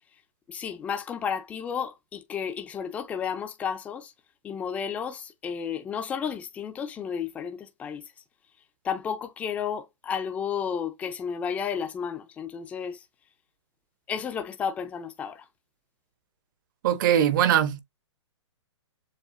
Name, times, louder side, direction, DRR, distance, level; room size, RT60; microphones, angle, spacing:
voice 1, 0.5-4.1 4.4-8.1 8.8-13.1 14.1-15.5, left 7 dB, 10° left, 0.4 m, -32 dB
voice 2, 16.8-17.8, right 10 dB, 40° right, 0.8 m, -21 dB
7.1 x 2.4 x 2.6 m
hypercardioid pair, 155°, 16 cm